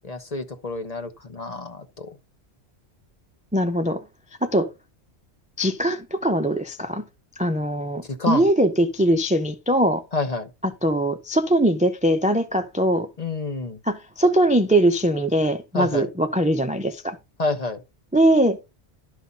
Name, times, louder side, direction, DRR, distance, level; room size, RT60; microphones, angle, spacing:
voice 1, 0.0-2.1 8.0-8.4 10.1-10.5 13.2-13.8 15.7-16.1 17.4-17.8, left 3 dB, 35° left, 1.1 m, -28 dB
voice 2, 3.5-4.0 4.4-4.7 5.6-7.0 7.4-10.0 10.8-13.1 13.9-17.2 18.1-18.6, right 1 dB, 10° right, 0.4 m, -21 dB
11.5 x 5.6 x 4.0 m
omnidirectional pair, 1.1 m